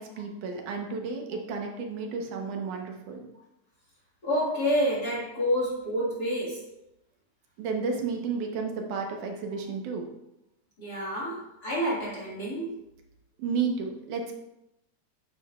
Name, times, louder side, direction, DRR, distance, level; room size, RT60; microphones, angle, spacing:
voice 1, 0.0-3.3 7.6-10.1 13.4-14.3, right 5 dB, 90° right, 2 dB, 2.6 m, -32 dB
voice 2, 4.2-6.7 10.8-12.8, equal, 35° left, -6 dB, 2.1 m, -28 dB
10.5 x 7.7 x 2.4 m, 0.87 s
omnidirectional pair, 3.4 m